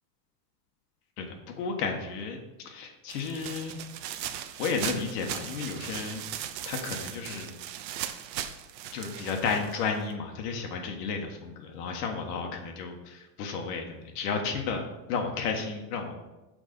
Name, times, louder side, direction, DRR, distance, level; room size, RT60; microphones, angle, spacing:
voice 1, 1.2-2.4 2.6-3.8 4.6-6.2 6.6-7.5 8.0-8.1 8.9-14.8 15.1-16.1, left 5 dB, 65° left, 3 dB, 1.4 m, -33 dB
sound 1, 3.1-10.1, right 11 dB, 90° right, 0.8 m, -38 dB
6.3 x 5.2 x 5.2 m, 1.0 s
supercardioid pair, 160°, 50 cm